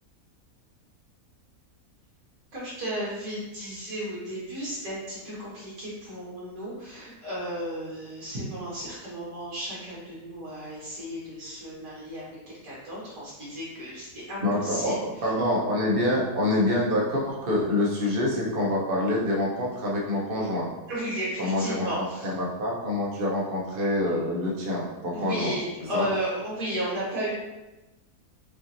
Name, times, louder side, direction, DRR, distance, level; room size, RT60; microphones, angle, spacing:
voice 1, 2.5-14.9 20.9-22.3 25.1-27.3, equal, 65° right, -8 dB, 2.1 m, -34 dB
voice 2, 14.4-20.7 21.4-25.5 25.9-26.1, left 1 dB, 45° right, -4 dB, 0.9 m, -26 dB
5.6 x 2.6 x 2.9 m, 1.1 s
omnidirectional pair, 1.6 m